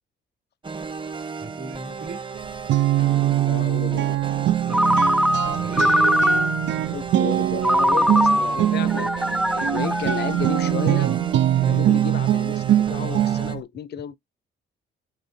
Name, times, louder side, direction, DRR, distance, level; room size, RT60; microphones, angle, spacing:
sound 1, 0.6-13.5, right 5 dB, 25° right, 1.0 m, -35 dB
voice 1, 1.4-2.3 4.6-6.5 11.5-11.8, right 2 dB, 50° right, 2.3 m, -38 dB
Guitar, 2.3-13.6, right 12 dB, 65° right, 0.4 m, -22 dB
voice 2, 3.5-4.2 6.8-9.1 9.5-11.2 11.7-14.2, left 10 dB, 55° left, 0.7 m, -33 dB
Ringtone, 4.7-6.8 7.6-11.0, equal, ahead, 0.3 m, -22 dB
8.2 x 4.1 x 2.8 m
cardioid pair, 90°, 20 cm